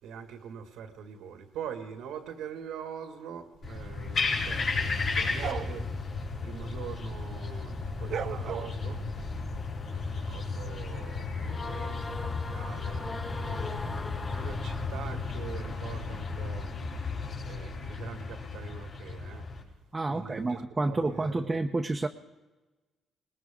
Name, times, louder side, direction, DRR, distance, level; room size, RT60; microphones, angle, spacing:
voice 1, 0.0-5.9 6.4-9.0 9.9-16.8 17.5-19.5 20.1-21.5, right 7 dB, 90° right, 1.8 m, -43 dB
sound 1, 3.6-19.6, left 4 dB, 60° left, 4.6 m, -34 dB
sound 2, 3.6-7.3 7.6-9.6, right 8 dB, 65° right, 0.7 m, -40 dB
sound 3, 11.5-15.3, left 2 dB, 20° left, 0.8 m, -41 dB
voice 2, 19.9-22.1, right 2 dB, 25° right, 0.8 m, -29 dB
20.0 x 19.5 x 3.7 m
cardioid pair, 90°, 0 cm